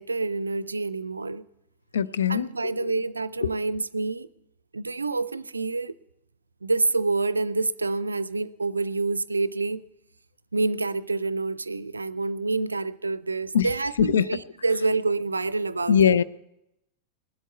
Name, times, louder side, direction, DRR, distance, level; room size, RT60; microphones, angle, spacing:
voice 1, 0.0-1.4 2.3-4.3 4.7-5.9 6.6-9.8 10.5-16.2, right 3 dB, 80° right, 0.4 m, -27 dB
voice 2, 1.9-2.5 2.8-2.9 13.5-13.7 14.0-14.2 15.9-16.2, left 8 dB, 65° left, 0.5 m, -20 dB
19.0 x 8.2 x 8.1 m
figure-of-eight pair, 90°, 0 cm